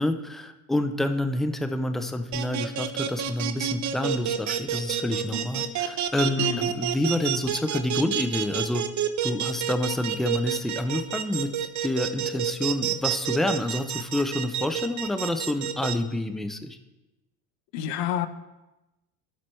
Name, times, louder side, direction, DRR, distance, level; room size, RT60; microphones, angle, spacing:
voice 1, 0.0-8.8 9.2-11.5 11.8-16.8, left 1 dB, ahead, 8 dB, 0.3 m, -28 dB
sound 1, 2.3-15.9, right 10 dB, 40° right, 0.7 m, -28 dB
voice 2, 6.4-6.8 17.7-18.3, left 11 dB, 65° left, 12 dB, 0.8 m, -29 dB
13.5 x 4.5 x 3.2 m, 1.0 s
hypercardioid pair, 90°, 45 cm